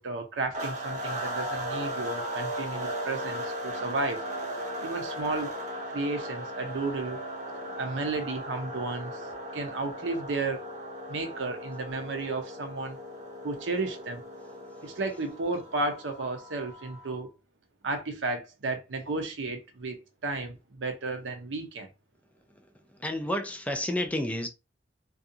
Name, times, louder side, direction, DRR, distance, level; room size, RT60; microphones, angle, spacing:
voice 1, 0.0-4.2 4.8-5.5 5.9-7.2 7.8-9.2 9.5-10.7 11.1-13.0 13.4-14.2 14.8-17.3 17.8-21.9, right 3 dB, 90° right, 0.6 m, -33 dB
sound 1, 0.5-17.2, equal, 40° right, 0.7 m, -37 dB
voice 2, 23.0-24.5, left 1 dB, 10° left, 0.3 m, -30 dB
2.5 x 2.3 x 2.7 m
head